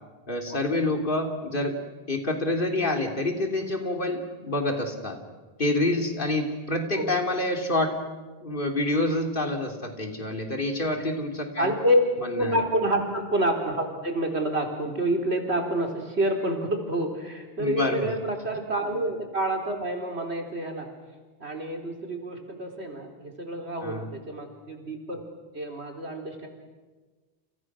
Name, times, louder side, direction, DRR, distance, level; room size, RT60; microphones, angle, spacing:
voice 1, 0.3-1.8 2.1-5.2 5.6-8.0 8.4-11.7 12.2-12.6 17.6-18.1 23.8-24.1, left 2 dB, 55° left, 4 dB, 3.3 m, -27 dB
voice 2, 11.6-12.0 12.3-20.9 21.4-25.2 25.5-26.5, right 1 dB, 80° right, 3 dB, 4.2 m, -28 dB
30.0 x 29.0 x 6.2 m, 1.3 s
omnidirectional pair, 1.1 m